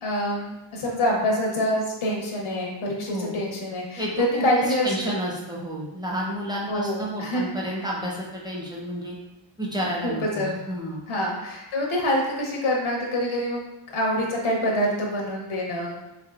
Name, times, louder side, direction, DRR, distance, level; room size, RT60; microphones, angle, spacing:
voice 1, 0.0-5.1 6.7-7.5 10.0-10.5 11.1-13.6 13.9-16.0, equal, 80° left, -2 dB, 0.8 m, -26 dB
voice 2, 4.0-9.2 9.6-11.0, right 1 dB, 10° right, -4 dB, 0.7 m, -30 dB
3.5 x 3.4 x 2.4 m, 0.96 s
wide cardioid pair, 145°, 48 cm